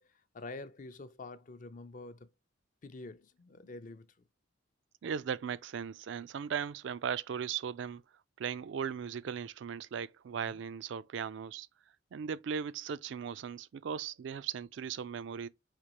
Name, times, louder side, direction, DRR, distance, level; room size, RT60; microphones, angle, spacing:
voice 1, 0.0-2.3 2.8-4.3 10.5-10.6, left 2 dB, 40° left, 0.4 m, -47 dB
voice 2, 5.0-8.0 8.4-11.7 12.1-15.5, right 7 dB, 60° right, 0.3 m, -37 dB
5.0 x 3.6 x 2.9 m
head